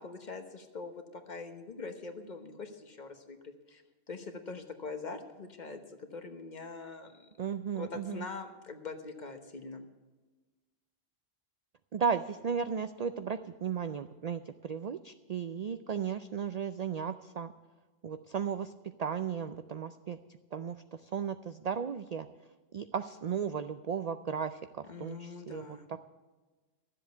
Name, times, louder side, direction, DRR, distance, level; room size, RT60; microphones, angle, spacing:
voice 1, 0.0-3.8 4.1-7.3 7.7-9.9 24.9-25.9, left 4 dB, 40° left, 7 dB, 1.2 m, -43 dB
voice 2, 7.4-8.3 11.9-17.5 18.0-18.7 19.0-20.2 20.5-22.3 22.7-26.1, right 7 dB, 65° right, 10 dB, 0.4 m, -35 dB
13.0 x 7.7 x 8.1 m, 1.3 s
omnidirectional pair, 1.2 m